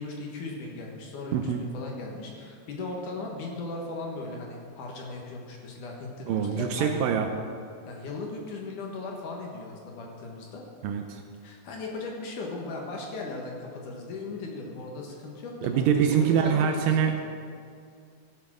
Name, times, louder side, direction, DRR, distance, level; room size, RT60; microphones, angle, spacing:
voice 1, 0.0-7.0 7.9-10.6 11.4-17.2, left 3 dB, 65° left, 0 dB, 2.7 m, -37 dB
voice 2, 1.3-1.6 6.3-7.3 10.8-11.2 15.6-17.2, right 7 dB, 75° right, 5 dB, 2.1 m, -24 dB
15.0 x 7.0 x 6.2 m, 2.3 s
omnidirectional pair, 4.3 m